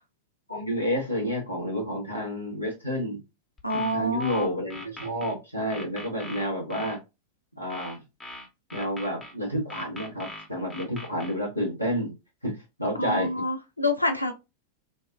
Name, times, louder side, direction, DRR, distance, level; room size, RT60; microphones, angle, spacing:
voice 1, 0.5-3.2 3.7-7.0 7.6-8.0 8.7-12.1 12.4-13.4, equal, 90° right, -2 dB, 1.1 m, -30 dB
voice 2, 3.6-4.5 13.0-14.3, left 1 dB, 85° left, 6 dB, 0.5 m, -27 dB
sound 1, 3.6-5.3 5.7-7.0 7.7-9.3 9.7-11.3, left 1 dB, 10° left, 0.8 m, -41 dB
2.7 x 2.3 x 2.4 m, 0.25 s
figure-of-eight pair, 90°, 0 cm